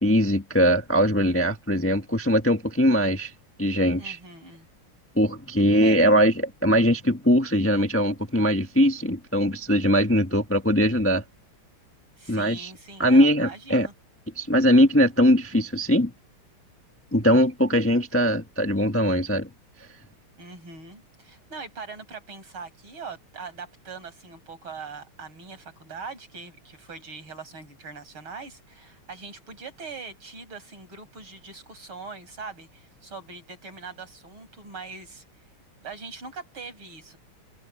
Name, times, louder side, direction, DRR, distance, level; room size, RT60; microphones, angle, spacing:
voice 1, 0.0-3.3 3.6-4.2 5.2-11.2 12.3-12.7 13.0-13.9 14.4-16.1 17.1-19.5, equal, 10° left, 0.9 m, -21 dB
voice 2, 4.0-4.7 5.8-6.2 12.2-13.9 20.4-35.2 35.8-37.2, right 4 dB, 75° right, 6.4 m, -41 dB
omnidirectional pair, 2.4 m